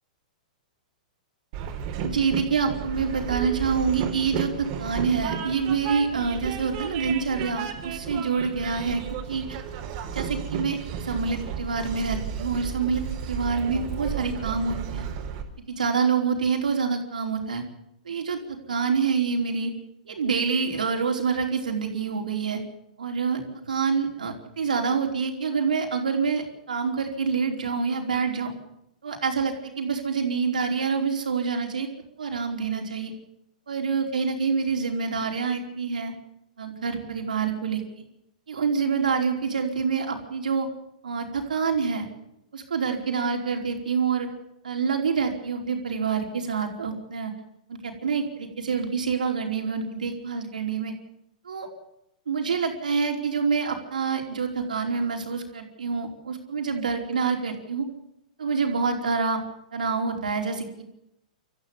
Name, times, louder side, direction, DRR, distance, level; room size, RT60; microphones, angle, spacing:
Train, 1.5-15.4, right 7 dB, 45° right, 4.3 m, -33 dB
voice 1, 2.0-9.6 10.1-15.0 15.7-17.6 18.0-19.7 20.0-22.6 23.0-28.5 29.0-31.9 32.2-33.1 33.7-36.1 36.6-37.8 38.5-40.7 41.0-42.1 42.5-44.3 44.6-47.3 47.7-50.9 51.4-51.7 52.3-57.9 58.4-59.4 59.7-60.8, right 5 dB, 80° right, 2 dB, 4.7 m, -27 dB
26.5 x 14.5 x 7.2 m, 0.82 s
hypercardioid pair, 115°, 4 cm